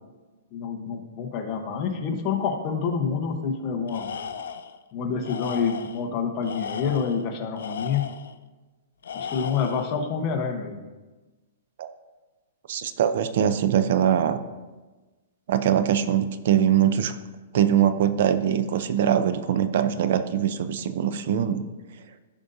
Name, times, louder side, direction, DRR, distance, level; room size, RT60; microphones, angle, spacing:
voice 1, 0.5-4.1 4.9-8.0 9.1-10.9, left 6 dB, 25° left, 3 dB, 1.0 m, -27 dB
Tools, 3.9-4.8 5.2-6.0 6.4-8.3 9.0-10.0, left 6 dB, 80° left, 0.5 m, -36 dB
voice 2, 12.7-14.4 15.5-17.2 17.5-21.6, right 9 dB, 50° right, 11 dB, 0.5 m, -22 dB
15.0 x 5.2 x 2.7 m, 1.2 s
hypercardioid pair, 165°, 0 cm